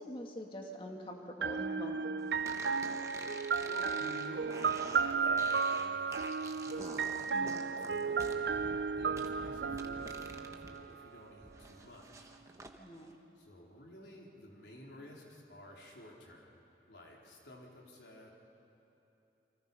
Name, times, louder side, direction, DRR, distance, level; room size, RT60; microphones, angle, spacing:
voice 1, 0.0-2.1 7.3-7.7 12.8-13.2, equal, 30° left, 1 dB, 2.2 m, -44 dB
sound 1, 1.4-11.2, right 5 dB, 75° right, 0.5 m, -34 dB
sound 2, 2.4-10.8 11.1-12.7, right 2 dB, 15° right, 1.2 m, -49 dB
voice 2, 3.7-6.9 7.4-12.3 13.4-16.6 16.9-18.3, left 1 dB, 80° left, -2 dB, 4.1 m, -52 dB
29.0 x 24.5 x 5.6 m, 3.0 s
head